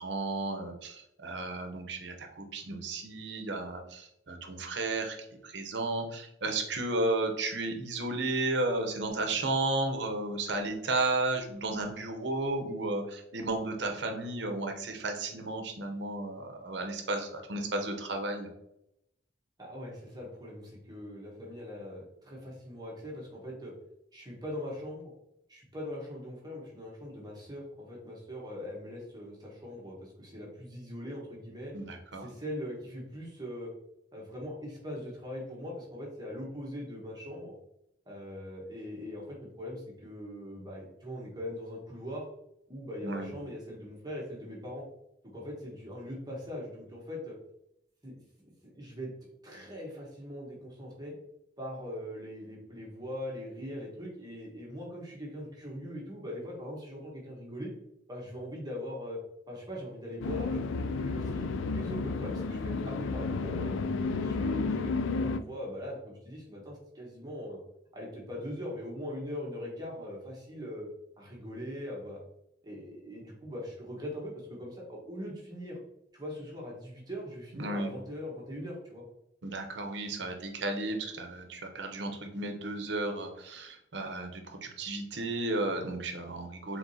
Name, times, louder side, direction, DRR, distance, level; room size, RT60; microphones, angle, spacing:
voice 1, 0.0-18.5 31.7-32.3 43.0-43.3 77.6-77.9 79.4-86.8, right 2 dB, 65° right, 4 dB, 0.8 m, -33 dB
voice 2, 19.6-23.7 24.1-25.1 25.5-31.7 32.2-33.7 34.1-37.5 38.1-42.2 42.7-44.9 45.3-47.3 48.0-48.1 48.7-49.1 49.4-51.1 51.6-57.7 58.1-59.2 59.5-63.7 64.1-67.6 67.9-70.9 71.2-72.2 72.6-75.8 76.1-79.0, equal, 20° right, -3 dB, 1.1 m, -41 dB
sound 1, 60.2-65.4, left 3 dB, 85° left, 0.3 m, -32 dB
4.7 x 3.7 x 2.7 m, 0.80 s
head